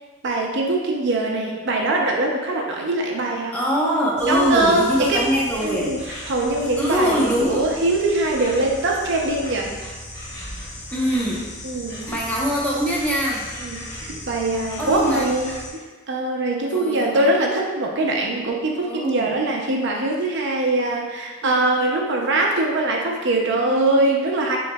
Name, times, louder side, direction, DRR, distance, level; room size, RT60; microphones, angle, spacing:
voice 1, 0.2-3.6 4.2-5.3 5.6-6.0 6.3-9.7 11.6-12.2 13.6-15.5 16.1-24.6, right 2 dB, 60° right, 0 dB, 0.6 m, -22 dB
voice 2, 3.5-6.0 6.8-7.6 10.9-11.5 12.1-13.5 14.8-15.3 16.7-17.3 18.9-19.4, equal, 10° left, -5 dB, 0.9 m, -23 dB
Insect, 4.2-15.7, left 1 dB, 55° left, 1.1 m, -37 dB
7.1 x 3.1 x 2.3 m, 1.3 s
head